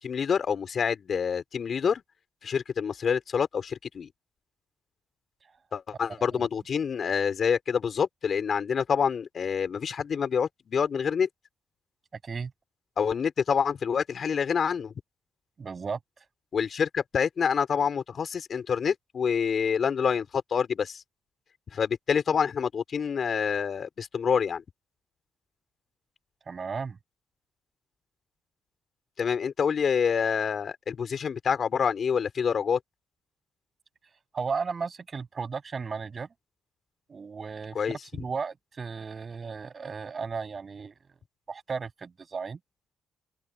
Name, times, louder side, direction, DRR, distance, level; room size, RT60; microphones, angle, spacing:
voice 1, 0.0-2.0 2.4-4.1 5.7-11.3 13.0-14.9 16.5-21.0 21.7-24.6 29.2-32.8 37.7-38.2, left 6 dB, 50° left, 4.1 m, -27 dB
voice 2, 15.6-16.0 26.5-27.0 34.3-36.3 37.1-40.9 41.5-42.6, right 5 dB, 40° right, 7.7 m, -35 dB
open air
cardioid pair, 90°, 0 cm